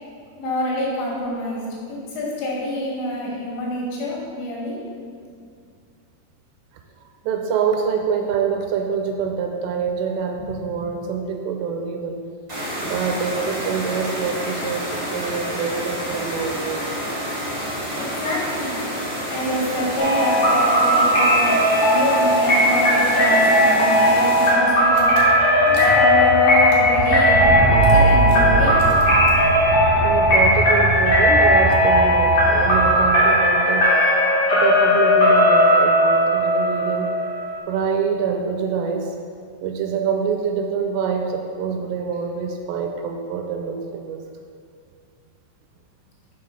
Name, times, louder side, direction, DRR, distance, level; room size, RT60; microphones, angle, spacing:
voice 1, 0.4-1.6 1.9-4.8 10.4-10.6 18.0-18.8 19.3-21.5 21.9-25.1 25.7-28.8 29.5-29.6, left 1 dB, 85° left, -4 dB, 4.0 m, -26 dB
voice 2, 7.2-12.2 12.8-16.9 30.0-33.9 34.5-37.1 37.7-39.1 39.6-44.2, right 6 dB, 85° right, 3 dB, 2.8 m, -25 dB
sound 1, 12.5-24.5, equal, 40° right, 0.5 m, -29 dB
sound 2, 20.0-37.6, equal, 55° left, 2.1 m, -17 dB
Car / Engine, 24.6-24.7 24.9-33.3, right 3 dB, 65° right, 2.0 m, -24 dB
6.7 x 5.7 x 5.6 m, 2.3 s
omnidirectional pair, 5.0 m